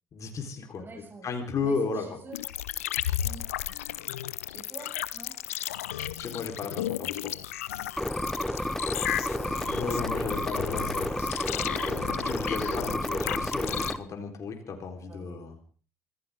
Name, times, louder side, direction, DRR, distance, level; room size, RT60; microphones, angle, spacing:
voice 1, 0.1-0.9 1.2-2.2 6.2-7.3 9.8-11.3 12.2-15.5, left 4 dB, 45° left, 4 dB, 3.9 m, -34 dB
voice 2, 0.8-1.3 1.6-2.4 3.2-3.5 4.5-5.3 6.6-6.7 7.9-8.7 9.6-9.7 10.1-10.2 11.5-12.3 15.1-15.5, right 2 dB, 30° right, 2 dB, 6.0 m, -48 dB
sound 1, 2.3-13.9, left 12 dB, 80° left, 0.7 m, -34 dB
sound 2, 8.0-14.0, left 1 dB, 5° left, 1.6 m, -31 dB
25.5 x 15.5 x 3.6 m, 0.39 s
hypercardioid pair, 55°, 8 cm